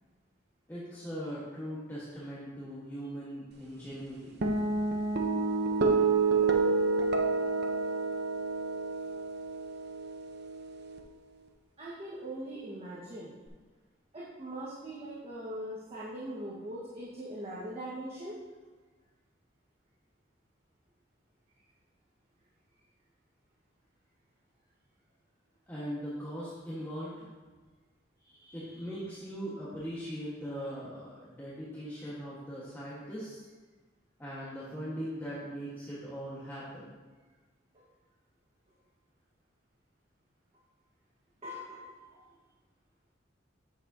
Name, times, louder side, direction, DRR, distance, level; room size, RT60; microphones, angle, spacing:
voice 1, 0.7-4.4 25.7-27.3 28.5-33.4 34.2-36.9, equal, 10° left, -9 dB, 1.4 m, -40 dB
sound 1, 4.4-11.0, right 4 dB, 60° right, 0.8 m, -29 dB
voice 2, 11.8-13.3 14.1-18.4 28.2-28.9 37.7-37.9 41.4-42.2, right 1 dB, 35° right, -7 dB, 1.4 m, -41 dB
9.0 x 7.3 x 2.8 m, 1.3 s
head